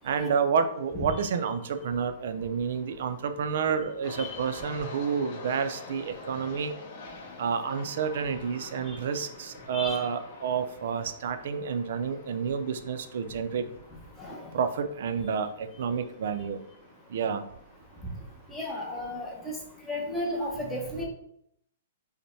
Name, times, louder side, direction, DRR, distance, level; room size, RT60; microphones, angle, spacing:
voice 1, 0.0-6.7 7.4-13.7 14.5-16.6 17.1-17.4, right 6 dB, 60° right, 9 dB, 0.4 m, -29 dB
sound 1, 4.0-19.0, left 3 dB, 45° left, 0.7 m, -47 dB
voice 2, 14.2-14.5 18.5-19.6 19.9-21.0, left 1 dB, 5° left, -3 dB, 0.8 m, -34 dB
5.2 x 2.1 x 3.2 m, 0.71 s
hypercardioid pair, 155°, 0 cm